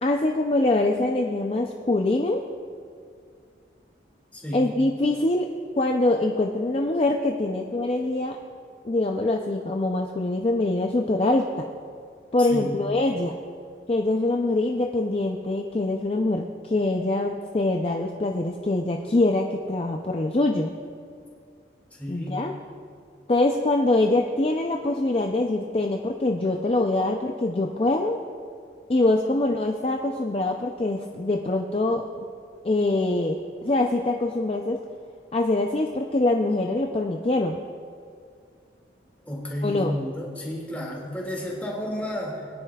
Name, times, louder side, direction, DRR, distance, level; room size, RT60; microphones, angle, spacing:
voice 1, 0.0-2.4 4.5-5.5 5.8-8.4 8.8-11.7 12.3-13.3 13.9-20.7 22.1-22.5 23.3-28.2 28.9-32.0 32.6-34.8 35.3-37.6 39.6-39.9, left 2 dB, 35° left, 2 dB, 0.4 m, -24 dB
voice 2, 4.3-4.7 12.4-12.8 21.9-22.4 39.2-42.5, equal, 10° left, -3 dB, 2.1 m, -32 dB
21.5 x 9.9 x 2.3 m, 2.3 s
head